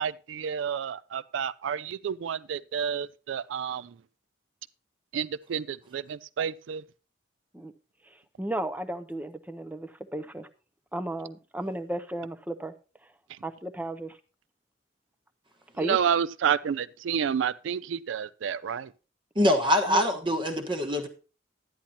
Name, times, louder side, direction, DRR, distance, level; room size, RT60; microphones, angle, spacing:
voice 1, 0.0-3.9 5.1-6.8 13.3-13.4 15.8-18.9, right 7 dB, 75° right, 0.4 m, -30 dB
voice 2, 8.0-10.5 10.9-12.7 13.0-13.1 13.4-14.2 15.7-16.0 19.9-20.0, right 1 dB, 10° right, 0.6 m, -34 dB
voice 3, 19.3-21.1, left 1 dB, 25° right, 1.2 m, -24 dB
11.5 x 10.0 x 2.8 m
head